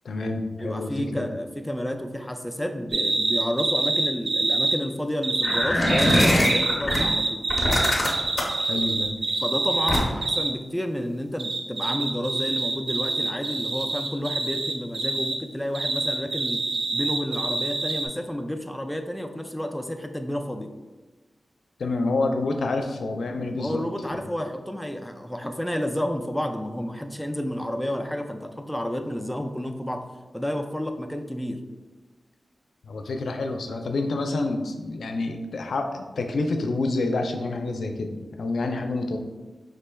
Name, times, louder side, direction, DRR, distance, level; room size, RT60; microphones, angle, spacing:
voice 1, 0.0-1.3 8.7-9.1 21.8-23.8 32.8-39.2, left 2 dB, 90° left, 4 dB, 0.4 m, -28 dB
voice 2, 0.6-7.4 9.4-16.6 16.9-20.7 23.6-30.0 30.3-31.6, equal, 5° left, 5 dB, 0.3 m, -30 dB
sound 1, 2.9-4.8 5.2-10.5 11.4-15.4 15.8-18.1, right 2 dB, 90° right, 0.4 m, -26 dB
sound 2, 5.4-7.0 7.5-8.6 9.9-10.3, left 1 dB, 40° left, 0.9 m, -22 dB
4.9 x 3.2 x 2.2 m, 1.2 s
wide cardioid pair, 80°, 0 cm